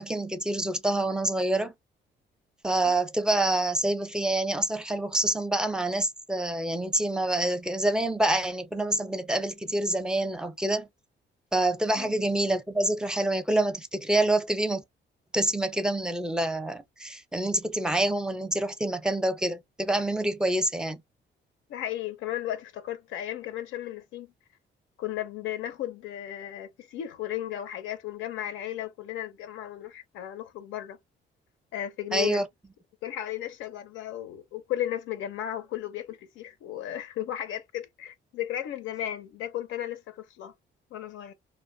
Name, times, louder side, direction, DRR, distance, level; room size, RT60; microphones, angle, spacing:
voice 1, 0.0-1.7 2.6-10.9 11.5-14.8 15.3-21.0 32.1-32.5, right 1 dB, 5° right, 0.4 m, -27 dB
voice 2, 21.7-24.3 25.0-31.0 31.7-32.4 33.0-40.5 40.9-41.3, left 12 dB, 90° left, 0.4 m, -35 dB
2.5 x 2.1 x 2.5 m
cardioid pair, 90°, 20 cm